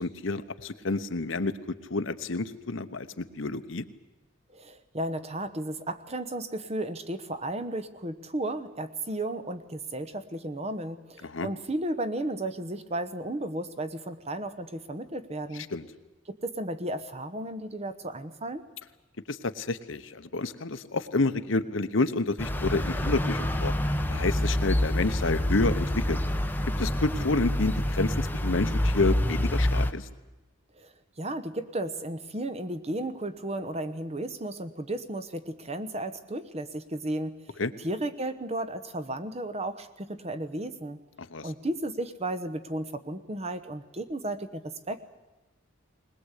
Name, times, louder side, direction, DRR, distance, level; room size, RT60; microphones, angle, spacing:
voice 1, 0.0-3.8 11.2-11.5 15.7-15.8 19.3-23.7 24.1-26.2 26.8-30.1 37.6-37.7 41.2-41.5, left 3 dB, 70° left, 11 dB, 1.0 m, -29 dB
voice 2, 4.5-15.7 16.3-18.6 30.8-30.9 31.2-37.3 37.8-41.0 41.4-45.0, right 1 dB, 30° right, 11 dB, 1.0 m, -34 dB
sound 1, 22.4-29.9, left 1 dB, 10° left, 0.8 m, -27 dB
20.5 x 20.5 x 8.3 m, 1.1 s
head